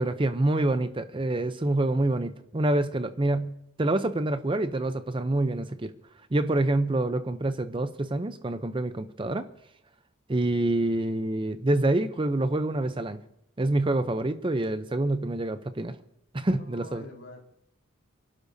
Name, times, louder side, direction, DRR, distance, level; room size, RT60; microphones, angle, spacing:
voice 1, 0.0-3.5 3.8-5.9 6.3-9.4 10.3-13.2 13.6-15.9 16.3-17.0, right 2 dB, 25° right, 10 dB, 0.6 m, -26 dB
voice 2, 16.5-17.5, left 1 dB, 70° left, 1 dB, 3.7 m, -46 dB
28.0 x 11.5 x 2.7 m, 0.75 s
head